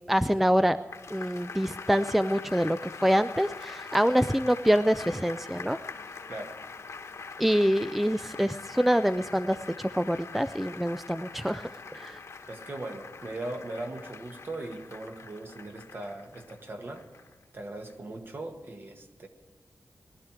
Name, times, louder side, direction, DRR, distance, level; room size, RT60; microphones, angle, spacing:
voice 1, 0.1-0.8 1.1-5.8 7.4-11.7 11.9-12.2, equal, 5° right, 11 dB, 0.4 m, -25 dB
sound 1, 0.9-17.4 17.9-18.0, left 4 dB, 70° left, 1.3 m, -44 dB
voice 2, 12.5-17.1 17.5-19.3, right 2 dB, 45° right, 4 dB, 1.7 m, -39 dB
20.0 x 12.0 x 4.6 m, 1.4 s
wide cardioid pair, 110°, 5 cm